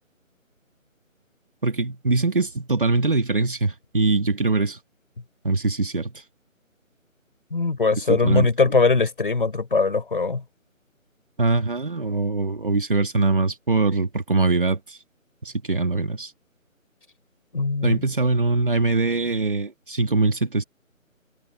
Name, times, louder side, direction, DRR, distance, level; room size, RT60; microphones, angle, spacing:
voice 1, 1.6-4.8 5.4-6.2 8.1-8.5 11.4-15.0 15.4-16.3 17.8-20.6, right 3 dB, 40° right, 2.5 m, -22 dB
voice 2, 7.5-10.4 17.5-18.0, left 4 dB, 40° left, 5.9 m, -21 dB
figure-of-eight pair, 175°, 41 cm